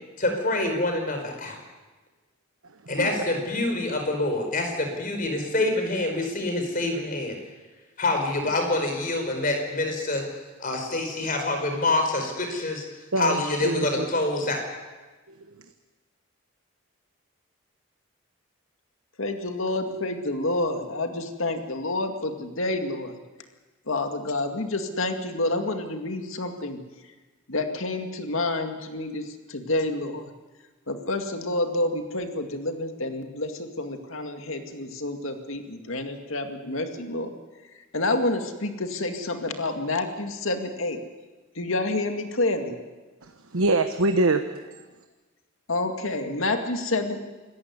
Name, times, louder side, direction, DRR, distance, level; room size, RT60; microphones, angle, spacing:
voice 1, 0.2-1.6 2.9-7.3 8.0-10.2 10.6-12.8 13.2-14.6, left 2 dB, 40° left, 4 dB, 4.9 m, -26 dB
voice 2, 13.1-14.1 15.3-15.6 43.2-44.4, right 2 dB, 85° right, 7 dB, 1.2 m, -25 dB
voice 3, 19.2-23.2 23.9-26.8 27.5-30.3 30.9-37.3 37.9-41.0 41.6-42.8 45.7-47.2, left 2 dB, 70° left, 5 dB, 2.2 m, -28 dB
26.5 x 14.5 x 9.6 m, 1.3 s
head